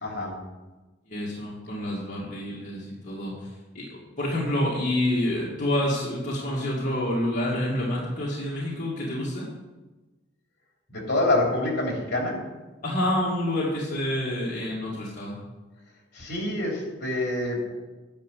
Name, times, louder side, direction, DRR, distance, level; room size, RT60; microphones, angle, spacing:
voice 1, 0.0-0.4 10.9-12.5 16.1-17.7, left 2 dB, 60° left, -1 dB, 3.2 m, -26 dB
voice 2, 1.1-9.5 12.8-15.4, left 1 dB, 40° left, -7 dB, 2.3 m, -28 dB
10.5 x 6.2 x 8.2 m, 1.2 s
head